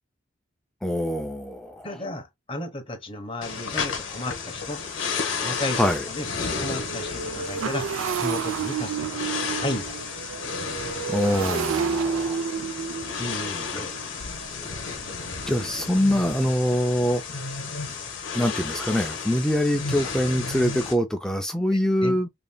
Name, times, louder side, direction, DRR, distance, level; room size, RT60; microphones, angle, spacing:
voice 1, 0.8-1.9 5.7-6.0 11.1-12.4 15.5-17.2 18.3-22.3, equal, 5° left, 0.4 m, -24 dB
voice 2, 1.8-4.8 5.4-5.8 6.1-6.3 6.6-10.0 13.2-13.9 21.7-22.2, left 1 dB, 25° left, 1.0 m, -34 dB
sound 1, 3.4-20.9, left 5 dB, 65° left, 1.2 m, -33 dB
Motorcycle, 3.8-3.9 4.4-4.5 4.8-16.4, right 6 dB, 85° right, 0.4 m, -32 dB
5.1 x 2.8 x 2.2 m
head